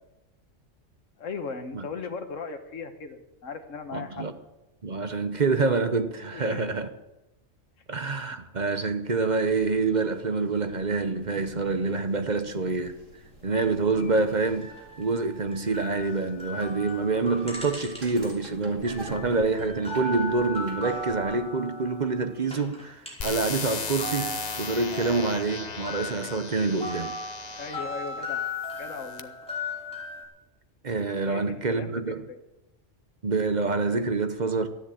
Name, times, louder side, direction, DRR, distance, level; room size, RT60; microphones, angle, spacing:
voice 1, 1.2-4.2 6.3-6.6 27.5-28.4 28.7-29.3 31.3-32.4, left 5 dB, 75° left, 1.7 m, -37 dB
voice 2, 3.9-4.3 4.8-6.9 7.9-13.0 13.4-14.7 15.0-27.1 30.8-32.2 33.2-34.7, right 3 dB, 40° right, 0.9 m, -27 dB
sound 1, 9.4-21.4, right 1 dB, 70° right, 3.0 m, -48 dB
sound 2, 13.9-18.4 18.7-23.6 23.9-30.2, left 1 dB, 5° left, 5.2 m, -37 dB
sound 3, 23.2-27.9 28.6-29.2, left 5 dB, 35° left, 0.8 m, -36 dB
13.5 x 10.0 x 8.4 m
omnidirectional pair, 1.3 m